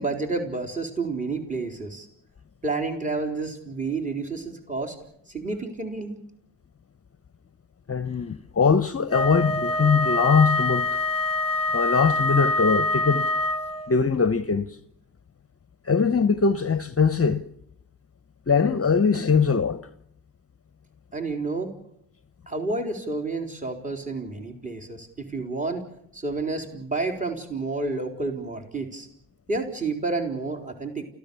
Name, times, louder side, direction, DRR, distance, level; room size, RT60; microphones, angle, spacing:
voice 1, 0.0-2.1 2.6-5.0 5.3-6.1 21.1-21.7 22.5-25.8 26.1-29.1 29.5-31.1, right 3 dB, 20° right, 4.2 m, -30 dB
voice 2, 7.9-10.9 11.7-13.3 13.9-14.8 15.8-17.4 18.5-19.9, left 5 dB, 30° left, 1.0 m, -22 dB
Wind instrument woodwind instrument, 9.1-14.0, left 2 dB, 15° left, 1.9 m, -25 dB
29.0 x 15.5 x 7.0 m
supercardioid pair, 55°, 43 cm